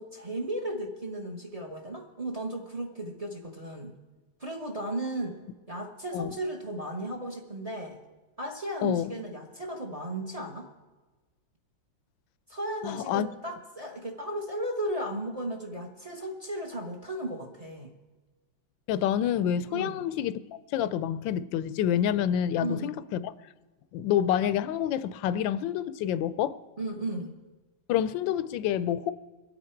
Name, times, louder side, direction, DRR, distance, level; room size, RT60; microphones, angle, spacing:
voice 1, 0.0-4.0 4.4-5.4 5.7-8.0 8.4-10.7 12.5-17.9 19.7-20.0 22.6-22.9 26.8-27.3, right 1 dB, 25° right, 3 dB, 0.9 m, -35 dB
voice 2, 8.8-9.1 12.8-13.3 18.9-20.4 20.7-23.3 23.9-26.6 27.9-29.1, left 10 dB, 75° left, 15 dB, 1.3 m, -28 dB
24.5 x 8.6 x 4.5 m, 1.2 s
omnidirectional pair, 2.2 m